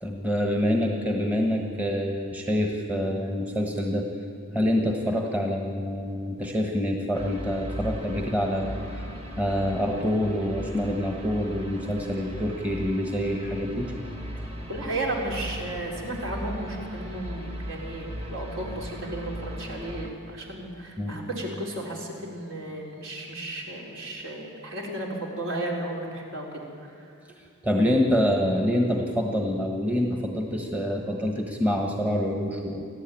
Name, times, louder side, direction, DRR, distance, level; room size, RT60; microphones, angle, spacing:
voice 1, 0.0-4.1 4.5-9.1 9.4-13.9 21.0-21.1 27.6-32.9, equal, 5° right, 1 dB, 1.4 m, -26 dB
sound 1, 7.1-20.1, equal, 25° right, 2.0 m, -37 dB
voice 2, 14.7-27.1, right 1 dB, 60° right, -1 dB, 4.2 m, -34 dB
29.5 x 12.0 x 9.2 m, 2.5 s
head